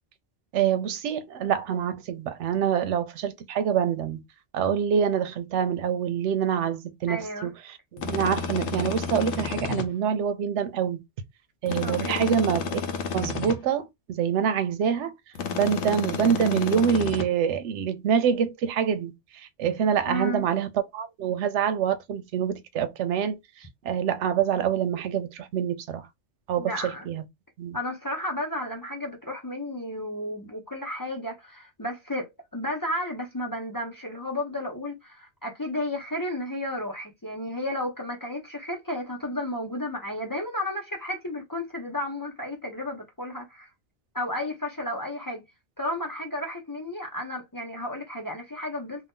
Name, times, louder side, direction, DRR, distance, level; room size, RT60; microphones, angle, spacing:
voice 1, 0.5-4.2 4.5-11.0 11.6-12.8 13.1-15.1 15.5-26.1 26.5-27.2 27.6-27.8, right 8 dB, 85° right, 0.9 m, -26 dB
voice 2, 7.1-7.5 11.8-12.3 20.1-20.4 26.6-27.1 27.7-43.7 44.1-45.4 45.8-49.1, left 1 dB, 25° left, 0.6 m, -33 dB
sound 1, 8.0-9.9 11.7-13.6 15.3-17.2, left 5 dB, 80° left, 1.0 m, -31 dB
2.7 x 2.3 x 3.5 m
omnidirectional pair, 1.2 m